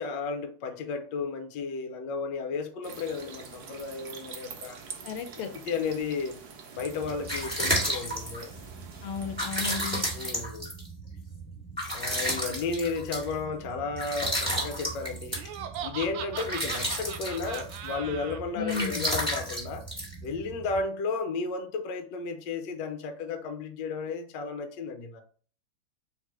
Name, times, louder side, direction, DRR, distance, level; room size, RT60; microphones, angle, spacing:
voice 1, 0.0-4.8 5.5-6.4 6.7-8.5 10.1-10.7 11.9-15.6 15.8-19.9 20.2-25.2, left 4 dB, 70° left, 1.2 m, -33 dB
sound 1, 2.8-9.7, right 5 dB, 65° right, 1.0 m, -46 dB
voice 2, 5.0-5.5 9.0-10.0 18.6-19.1, left 5 dB, 85° left, 1.6 m, -34 dB
sound 2, 6.9-20.8, equal, 5° left, 1.7 m, -33 dB
Laughter, 15.3-18.4, right 9 dB, 80° right, 1.4 m, -39 dB
3.6 x 3.0 x 4.6 m
omnidirectional pair, 2.4 m